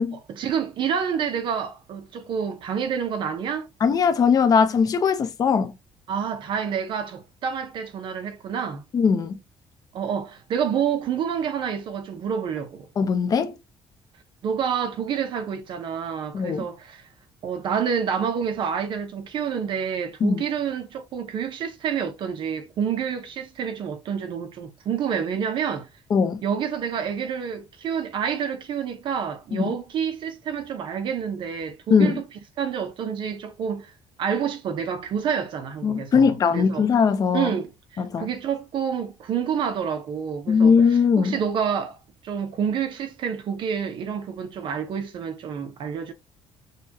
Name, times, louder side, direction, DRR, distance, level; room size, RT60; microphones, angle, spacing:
voice 1, 0.3-3.7 6.1-8.8 9.9-12.9 14.4-17.0 17.4-25.9 26.4-32.2 32.6-33.9 34.2-36.9 37.3-40.7 41.2-42.0 42.2-46.1, right 7 dB, 55° right, 0.7 m, -28 dB
voice 2, 3.8-5.7 8.9-9.4 13.0-13.6 16.3-16.7 20.2-20.4 26.1-26.4 29.5-29.7 31.9-32.2 35.8-37.5 38.0-38.3 40.5-41.4, left 6 dB, 40° left, 0.7 m, -20 dB
6.6 x 2.3 x 2.8 m
cardioid pair, 145°, 10 cm